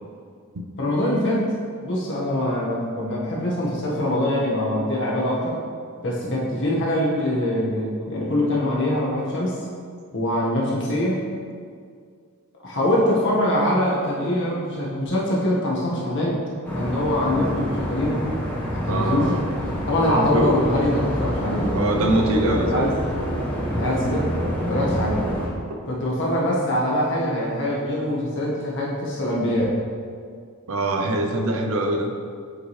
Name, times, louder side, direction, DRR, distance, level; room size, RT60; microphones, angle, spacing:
voice 1, 0.8-1.5 1.8-5.6 6.0-9.6 10.1-11.2 12.6-16.4 16.7-18.2 18.8-19.3 19.9-22.9 23.7-24.3 24.7-25.2 25.9-29.7, left 1 dB, 55° left, -5 dB, 1.6 m, -23 dB
sound 1, 16.6-25.5, equal, 10° left, 1.2 m, -27 dB
voice 2, 18.9-19.4 20.2-20.6 21.7-22.9 24.8-25.1 30.7-32.1, right 2 dB, 70° right, 3 dB, 0.7 m, -24 dB
8.0 x 5.2 x 3.3 m, 2.1 s
head